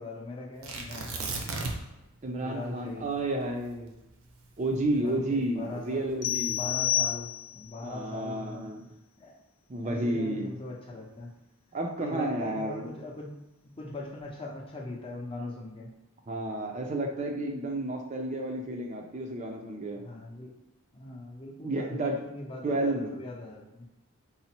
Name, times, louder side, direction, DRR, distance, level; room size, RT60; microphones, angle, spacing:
voice 1, 0.0-1.4 2.4-3.1 4.9-6.0 6.5-8.7 9.2-9.3 9.8-11.3 12.0-13.3 13.6-15.9 20.0-20.5 20.9-23.9, left 2 dB, 25° left, -2 dB, 0.6 m, -40 dB
Tearing, 0.6-2.0 2.3-2.4 2.9-5.3 6.0-6.5, right 3 dB, 75° right, 0.6 m, -36 dB
voice 2, 2.2-4.0 4.6-6.6 7.8-8.8 9.7-10.5 11.7-12.9 16.3-20.0 21.6-22.2 22.6-23.1, right 1 dB, 30° right, 2 dB, 0.4 m, -31 dB
sound 1, 6.2-7.7, left 12 dB, 80° left, 0.4 m, -29 dB
4.0 x 2.0 x 4.3 m, 0.93 s
head